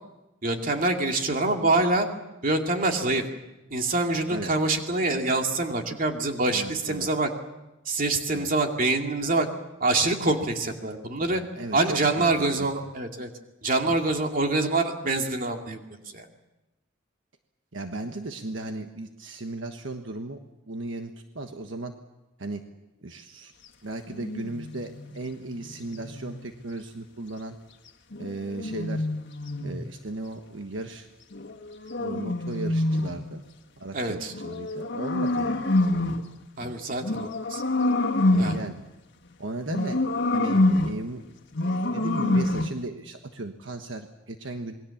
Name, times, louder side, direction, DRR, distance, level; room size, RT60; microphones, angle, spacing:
voice 1, 0.4-2.1 2.4-3.2 3.7-7.3 7.9-9.5 9.8-11.4 11.7-13.3 13.6-15.8 16.1-16.2 33.9-34.3 36.6-37.6 38.4-38.6, right 2 dB, 45° right, 3 dB, 2.6 m, -25 dB
voice 2, 6.5-7.2 8.3-8.5 11.3-12.7 13.8-13.9 17.7-20.4 20.7-21.9 22.4-22.6 23.0-23.5 23.8-27.6 28.2-29.1 29.6-31.1 32.0-33.4 33.8-35.7 36.6-36.7 38.3-38.8 39.4-40.0 40.3-41.2 41.9-44.7, right 2 dB, 70° right, 5 dB, 1.4 m, -36 dB
Lion roaring, 24.1-26.5 28.1-29.9 31.3-33.3 34.3-36.3 37.0-38.8 39.7-41.1 41.5-42.8, left 2 dB, 60° left, 1.7 m, -27 dB
27.5 x 21.5 x 7.2 m, 0.97 s
head